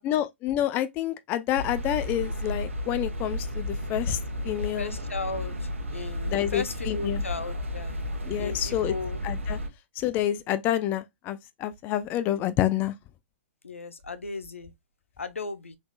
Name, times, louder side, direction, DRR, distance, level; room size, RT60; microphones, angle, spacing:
voice 1, 0.0-4.2 4.4-4.9 6.3-7.2 8.3-8.9 9.2-9.6 10.0-12.9, left 12 dB, 30° left, 0.4 m, -28 dB
sound 1, 1.5-9.7, left 1 dB, 85° right, 1.4 m, -33 dB
voice 2, 4.8-8.0 8.4-9.2 13.6-14.7 15.2-15.8, left 3 dB, 85° left, 0.8 m, -36 dB
3.9 x 3.4 x 2.3 m
hypercardioid pair, 120°, 7 cm